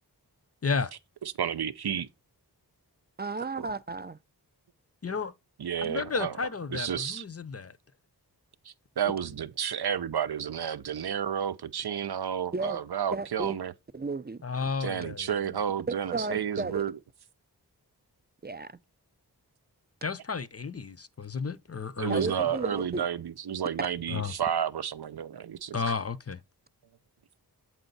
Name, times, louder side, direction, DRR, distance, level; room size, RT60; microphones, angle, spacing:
voice 1, 0.6-0.9 5.0-5.3 5.8-7.8 14.4-15.3 20.0-22.4 24.1-24.3 25.7-26.4, left 5 dB, 35° left, 0.6 m, -32 dB
voice 2, 1.2-2.1 3.6-3.7 5.6-6.4 6.7-7.2 8.6-13.7 14.8-17.0 22.0-25.8, right 8 dB, 70° right, 0.6 m, -31 dB
voice 3, 3.2-4.2 12.5-12.8 13.1-13.6 13.9-14.4 16.1-16.8 18.4-18.8 22.1-23.0, right 3 dB, 25° right, 0.4 m, -33 dB
7.9 x 4.4 x 4.0 m
wide cardioid pair, 55°, 40 cm